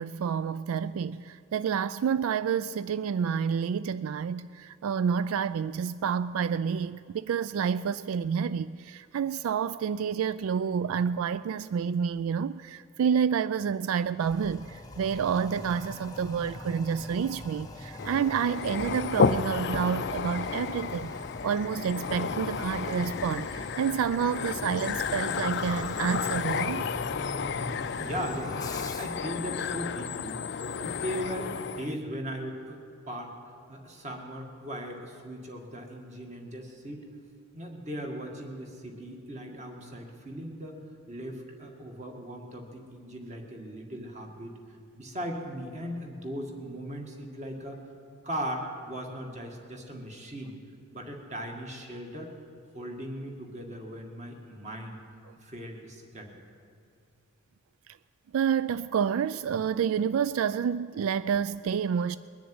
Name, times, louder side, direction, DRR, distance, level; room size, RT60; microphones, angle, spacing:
voice 1, 0.0-21.1 21.4-26.9 57.9-58.0 58.3-62.2, right 7 dB, 85° right, 16 dB, 0.3 m, -29 dB
Toilet flush, 14.2-29.3, left 1 dB, 15° left, 0.9 m, -42 dB
sound 1, 18.0-31.9, left 5 dB, 55° left, 0.4 m, -32 dB
voice 2, 27.8-30.4 30.7-33.3 33.7-37.1 37.5-40.8 41.1-47.8 48.2-50.6 50.9-52.3 52.7-55.0 55.4-56.4, equal, 35° right, 2 dB, 1.9 m, -38 dB
21.0 x 7.1 x 9.5 m, 2.4 s
head